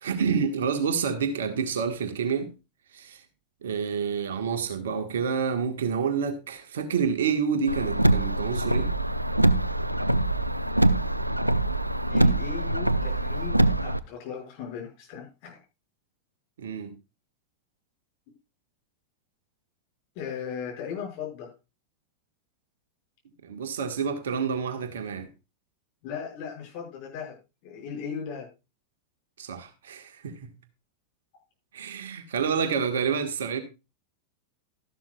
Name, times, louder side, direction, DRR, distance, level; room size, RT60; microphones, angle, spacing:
voice 1, 0.0-2.5 2.9-3.2 3.6-8.9 16.6-16.9 23.4-25.3 29.4-30.5 31.7-33.6, right 6 dB, 60° right, 1.5 m, -28 dB
Car, 7.7-14.0, right 1 dB, 85° right, 0.4 m, -24 dB
voice 2, 12.1-15.6 20.1-21.5 26.0-27.4 27.6-28.5, left 7 dB, 45° left, 5.9 m, -37 dB
13.0 x 11.5 x 2.4 m
figure-of-eight pair, 90°, 0 cm